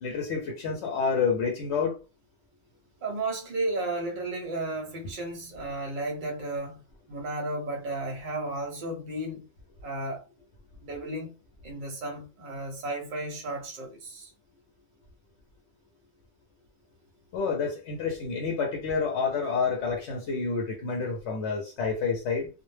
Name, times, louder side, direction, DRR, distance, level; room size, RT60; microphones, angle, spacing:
voice 1, 0.0-1.9 17.3-22.5, left 5 dB, 75° left, 0.8 m, -28 dB
voice 2, 3.0-6.8 7.1-9.4 9.8-10.2 10.8-11.3 11.6-14.3, right 2 dB, 50° right, 0.8 m, -33 dB
2.2 x 2.1 x 3.1 m
omnidirectional pair, 1.2 m